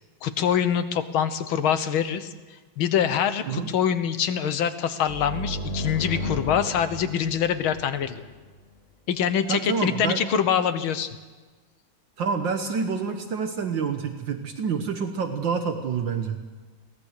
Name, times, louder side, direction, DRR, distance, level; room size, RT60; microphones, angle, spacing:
voice 1, 0.2-2.3 2.8-8.2 9.1-11.1, left 8 dB, 85° left, 11 dB, 1.9 m, -24 dB
sound 1, 5.1-8.7, left 1 dB, 30° left, 2.1 m, -34 dB
voice 2, 9.5-10.2 12.2-16.4, right 5 dB, 70° right, 6 dB, 1.8 m, -27 dB
22.5 x 18.0 x 6.6 m, 1.3 s
omnidirectional pair, 2.2 m